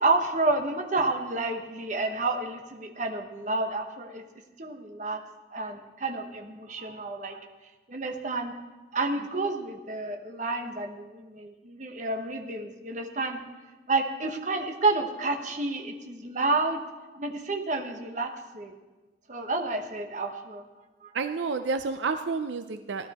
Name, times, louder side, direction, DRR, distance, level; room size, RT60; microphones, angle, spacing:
voice 1, 0.0-4.2 4.6-5.2 5.5-7.4 7.9-8.5 8.9-13.4 13.9-16.8 17.1-18.7 19.3-20.6 21.0-21.1, right 3 dB, 40° right, 4 dB, 1.1 m, -30 dB
voice 2, 21.1-23.1, right 4 dB, 75° right, 9 dB, 0.5 m, -30 dB
17.0 x 12.0 x 4.2 m, 1.2 s
head